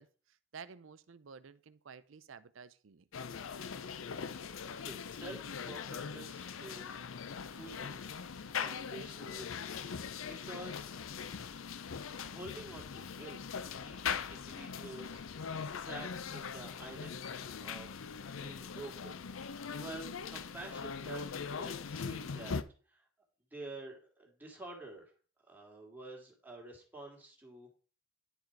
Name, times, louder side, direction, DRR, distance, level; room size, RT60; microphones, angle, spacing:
voice 1, 0.0-3.1, right 6 dB, 75° right, 0.5 m, -52 dB
sound 1, 3.1-22.6, left 6 dB, 80° left, 0.6 m, -41 dB
voice 2, 4.4-7.0 7.5-8.0 8.4-9.9 10.2-10.9 12.2-13.4 13.8-15.2 15.8-22.6 22.9-23.1 23.5-25.0 25.5-27.8, right 2 dB, 10° right, 2.2 m, -49 dB
10.0 x 4.8 x 4.6 m
head